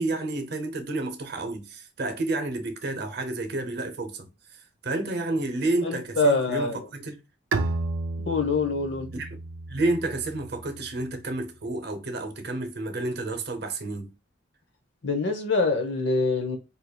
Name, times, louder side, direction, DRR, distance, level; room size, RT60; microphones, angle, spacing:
voice 1, 0.0-7.2 9.1-9.4 9.7-14.1, right 2 dB, 55° right, 0.7 m, -30 dB
voice 2, 5.8-6.9 8.2-9.1 15.0-16.6, left 3 dB, 60° left, 0.8 m, -25 dB
Bowed string instrument, 7.5-11.0, right 3 dB, 90° right, 0.4 m, -32 dB
4.5 x 2.8 x 2.2 m
head